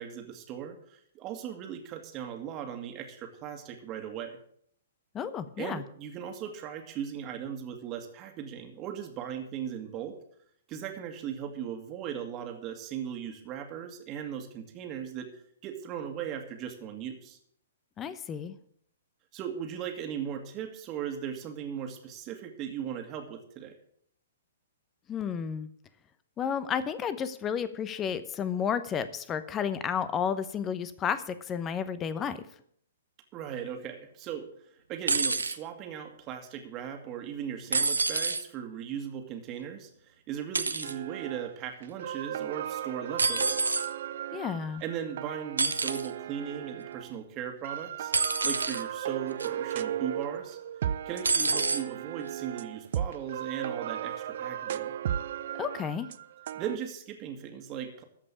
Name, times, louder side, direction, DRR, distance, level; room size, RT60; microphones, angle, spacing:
voice 1, 0.0-4.4 5.6-10.2 10.7-17.4 19.3-23.8 33.3-34.5 34.9-43.8 44.8-48.1 48.4-50.6 51.1-54.9 56.5-58.0, right 9 dB, 30° right, 4 dB, 1.9 m, -38 dB
voice 2, 5.1-5.8 18.0-18.6 25.1-25.7 26.4-32.4 44.3-44.8 55.6-56.1, left 7 dB, 20° left, 14 dB, 0.8 m, -32 dB
sound 1, 35.1-35.6 37.7-38.4 40.5-40.9 43.2-43.9 45.6-46.1 48.1-48.8 49.4-49.7 51.2-51.8 52.8-52.9, right 4 dB, 80° right, 0.8 m, -27 dB
sound 2, 40.8-41.5 41.8-47.1 47.6-56.8, right 10 dB, 55° right, 0.5 m, -36 dB
14.0 x 5.3 x 8.5 m, 0.64 s
figure-of-eight pair, 115°, 0 cm